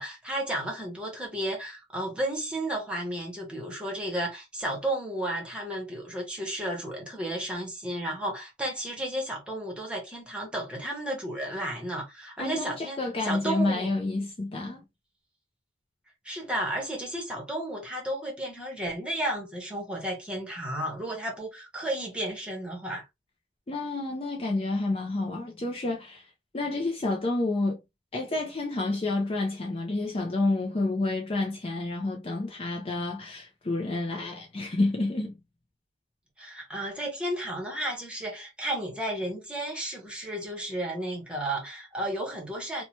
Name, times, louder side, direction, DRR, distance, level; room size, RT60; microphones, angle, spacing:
voice 1, 0.0-13.0 13.2-13.9 16.2-23.1 36.4-42.8, right 1 dB, 5° right, 1.0 m, -33 dB
voice 2, 12.4-14.8 23.7-27.8 28.1-35.3, left 2 dB, 30° left, 0.5 m, -29 dB
2.8 x 2.2 x 2.8 m
head